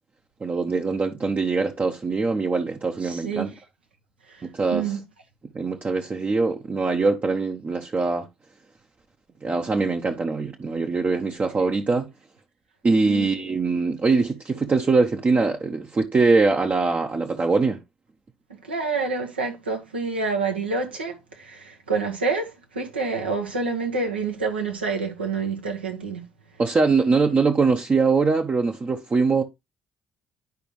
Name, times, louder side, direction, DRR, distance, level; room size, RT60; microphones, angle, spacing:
voice 1, 0.4-3.5 4.4-4.8 5.5-8.3 9.4-12.1 12.8-17.8 26.6-29.4, right 4 dB, 30° right, 0.9 m, -22 dB
voice 2, 3.0-3.5 4.3-5.0 13.0-13.3 18.5-26.3, right 4 dB, 80° right, 1.3 m, -28 dB
10.5 x 5.1 x 3.1 m
figure-of-eight pair, 45°, 6 cm